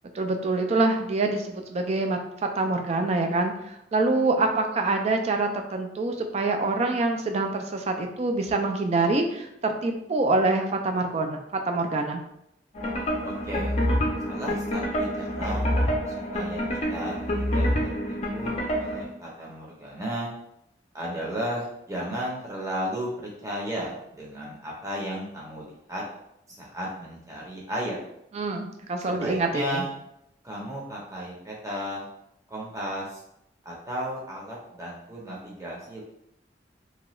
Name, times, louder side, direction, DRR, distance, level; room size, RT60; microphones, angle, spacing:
voice 1, 0.1-2.2 2.6-12.2 28.3-29.8, right 3 dB, 35° right, 4 dB, 0.3 m, -25 dB
sound 1, 12.8-19.0, equal, 35° left, 0.5 m, -27 dB
voice 2, 13.2-13.8 14.2-15.7 16.1-16.6 16.9-17.7 18.1-20.3 20.9-26.0 26.6-28.0 29.0-29.9 30.4-32.1 32.5-33.2 33.6-36.0, equal, 15° right, -4 dB, 0.7 m, -34 dB
2.9 x 2.3 x 3.0 m, 0.79 s
head